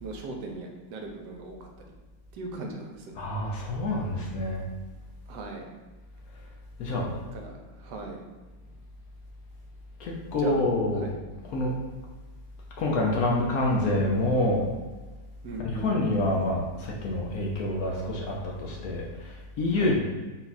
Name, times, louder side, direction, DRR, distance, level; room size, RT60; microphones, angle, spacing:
voice 1, 0.0-1.9 2.3-3.2 5.3-5.7 7.3-8.7 10.3-10.6 10.9-11.2 15.4-15.9 18.7-18.9 19.7-20.0, right 2 dB, 80° right, 2 dB, 1.2 m, -39 dB
voice 2, 3.1-4.6 6.8-7.1 10.0-11.1 11.4-11.7 12.8-14.7 15.6-20.0, left 1 dB, 65° left, -2 dB, 1.0 m, -27 dB
4.2 x 2.3 x 4.0 m, 1.2 s
omnidirectional pair, 1.9 m